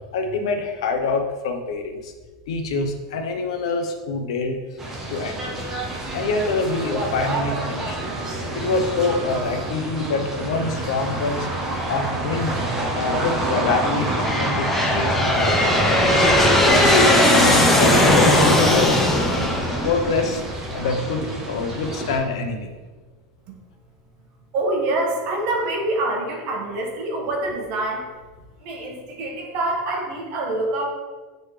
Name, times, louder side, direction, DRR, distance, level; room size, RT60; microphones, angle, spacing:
voice 1, 0.1-2.1 2.5-4.6 5.1-5.7 6.1-8.0 8.5-11.5 11.9-12.6 12.9-15.9 16.7-18.9 19.8-22.7, left 3 dB, 80° left, 5 dB, 0.8 m, -25 dB
sound 1, 4.8-22.2, right 2 dB, 15° right, 1.0 m, -28 dB
Aircraft, 11.9-12.5 13.2-20.7, left 1 dB, 5° left, 0.7 m, -19 dB
Chink clink, 15.9-20.1, right 2 dB, 50° left, 1.7 m, -31 dB
voice 2, 24.5-28.1 28.6-30.8, right 2 dB, 45° right, 0 dB, 1.5 m, -25 dB
7.9 x 4.0 x 3.3 m, 1.3 s
supercardioid pair, 155°, 3 cm